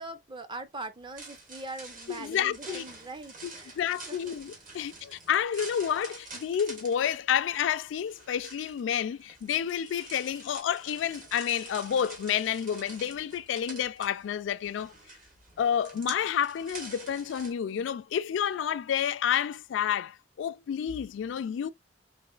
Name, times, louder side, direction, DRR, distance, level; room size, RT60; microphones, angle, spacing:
voice 1, 0.0-3.8 4.0-4.3 4.7-4.9, right 2 dB, 25° right, 0.5 m, -42 dB
sound 1, 1.0-17.5, right 3 dB, 50° right, 1.2 m, -47 dB
voice 2, 2.1-2.9 3.4-3.5 3.8-14.9 15.6-21.7, left 9 dB, 85° left, 0.3 m, -30 dB
4.0 x 3.0 x 2.3 m
head